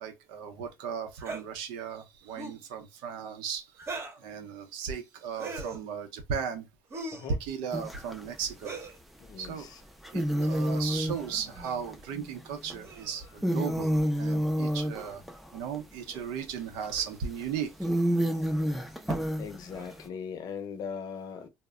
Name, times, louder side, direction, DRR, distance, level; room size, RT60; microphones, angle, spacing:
voice 1, 0.0-3.6 4.2-6.6 7.4-8.8 9.4-9.7 10.1-13.9 14.2-15.2 15.5-17.7, right 7 dB, 80° right, 0.7 m, -36 dB
sound 1, 1.2-1.4 2.3-2.6 3.8-4.2 5.3-5.8 6.9-7.3 8.6-9.0 10.3-10.5 11.6-11.8 12.8-13.3 14.9-15.1 16.1-16.3 16.9-17.2 18.0-18.2 19.7-20.1, right 3 dB, 35° right, 0.8 m, -41 dB
sound 2, 7.7-8.3 9.4-9.5 10.0-12.8 13.2-16.2 16.8-17.0 17.4-17.5 17.8-20.0, equal, ahead, 0.5 m, -29 dB
voice 2, 9.2-9.8 11.1-11.2 14.2-14.5 18.6-18.8 19.4-21.5, left 6 dB, 55° left, 0.6 m, -40 dB
2.1 x 2.0 x 3.6 m
supercardioid pair, 95°, 8 cm